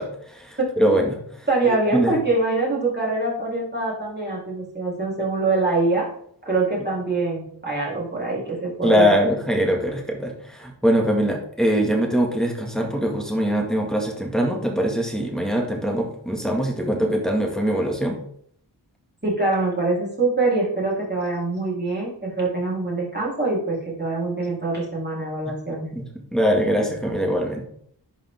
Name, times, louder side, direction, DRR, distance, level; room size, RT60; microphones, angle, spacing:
voice 1, 0.0-2.1 8.8-18.2 25.5-25.6 25.9-27.6, equal, ahead, 0 dB, 2.0 m, -22 dB
voice 2, 1.5-6.1 6.5-9.1 19.2-25.9, right 3 dB, 25° right, -6 dB, 3.9 m, -24 dB
11.0 x 5.4 x 3.7 m, 0.66 s
wide cardioid pair, 65°, 44 cm